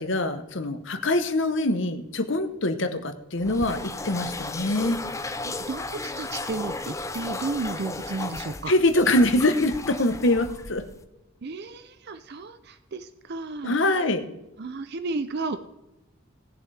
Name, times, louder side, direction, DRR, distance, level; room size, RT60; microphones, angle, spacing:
voice 1, 0.0-5.0 8.7-10.8 13.6-14.2, left 1 dB, 60° left, 9 dB, 1.0 m, -24 dB
sound 1, 3.4-11.0, left 3 dB, 15° left, 0.4 m, -35 dB
voice 2, 5.4-8.7 11.4-13.8 14.6-15.6, right 3 dB, 50° right, 10 dB, 0.5 m, -33 dB
18.5 x 7.0 x 3.4 m, 0.94 s
head